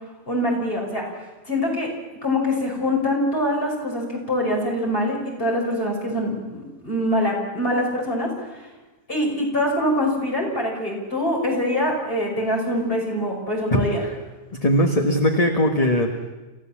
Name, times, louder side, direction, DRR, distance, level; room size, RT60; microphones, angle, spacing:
voice 1, 0.3-1.1 1.4-1.9 2.2-8.5 9.1-14.0, left 1 dB, 50° left, -1 dB, 5.9 m, -24 dB
voice 2, 13.7-14.1 14.6-16.3, equal, 30° left, 2 dB, 1.7 m, -20 dB
28.5 x 15.0 x 7.4 m, 1.2 s
omnidirectional pair, 1.3 m